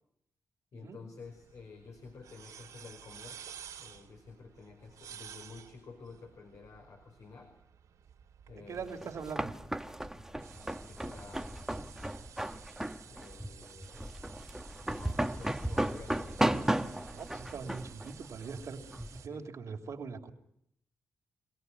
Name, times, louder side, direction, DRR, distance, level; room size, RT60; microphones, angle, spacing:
voice 1, 0.7-3.4 3.8-7.5 8.5-9.2 10.5-11.5 13.0-14.2 14.9-16.5 19.3-19.4, left 4 dB, 70° left, 4 dB, 5.1 m, -51 dB
sound 1, 1.2-19.3, right 8 dB, 85° right, 2.8 m, -53 dB
voice 2, 8.5-9.5 17.1-18.8 19.1-20.3, right 5 dB, 70° right, 4 dB, 3.1 m, -42 dB
sound 2, 8.8-19.2, right 1 dB, 5° right, 1.4 m, -35 dB
25.5 x 18.0 x 9.8 m, 0.78 s
cardioid pair, 55°, 6 cm